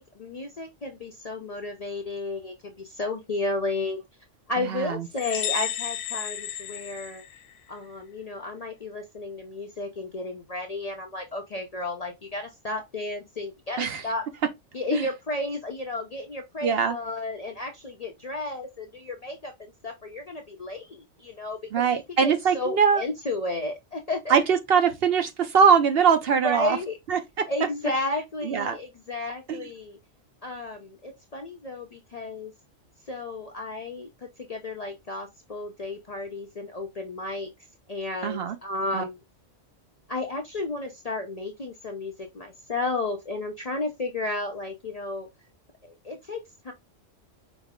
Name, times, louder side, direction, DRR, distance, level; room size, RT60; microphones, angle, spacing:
voice 1, 0.0-4.0 4.5-7.2 7.7-14.3 14.7-24.4 26.4-27.0 27.5-30.0 30.4-32.5 33.1-37.5 37.9-39.2 40.1-45.3 45.8-46.7, left 2 dB, 45° left, 0.5 m, -33 dB
voice 2, 4.6-5.0 13.8-14.0 14.9-15.0 16.6-17.0 21.7-23.0 24.3-26.8 27.1-27.5 28.4-28.8 29.5-29.6 38.2-38.6 38.9-39.0, right 6 dB, 60° right, 0.7 m, -22 dB
sound 1, 5.2-7.8, left 11 dB, 80° left, 0.9 m, -32 dB
5.1 x 2.0 x 3.5 m
omnidirectional pair, 1.3 m